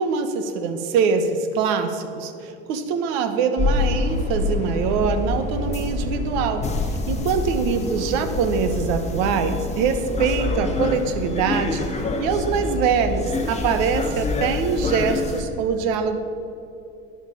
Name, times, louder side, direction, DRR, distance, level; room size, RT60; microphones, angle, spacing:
voice 1, 0.0-6.7 7.1-11.9 12.2-16.2, right 6 dB, 65° right, 9 dB, 1.1 m, -23 dB
sound 1, 3.6-15.4, left 3 dB, 25° left, 1.7 m, -26 dB
10.0 x 6.9 x 7.0 m, 2.7 s
hypercardioid pair, 80°, 29 cm